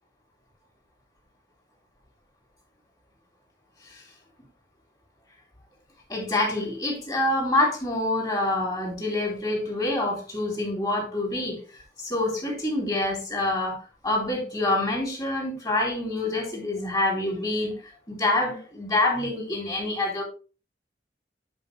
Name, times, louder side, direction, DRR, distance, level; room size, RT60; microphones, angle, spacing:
voice 1, 6.1-11.6 12.0-13.8 14.0-17.8 18.1-20.2, left 2 dB, 25° left, -1 dB, 4.2 m, -26 dB
10.5 x 5.5 x 3.4 m, 0.34 s
head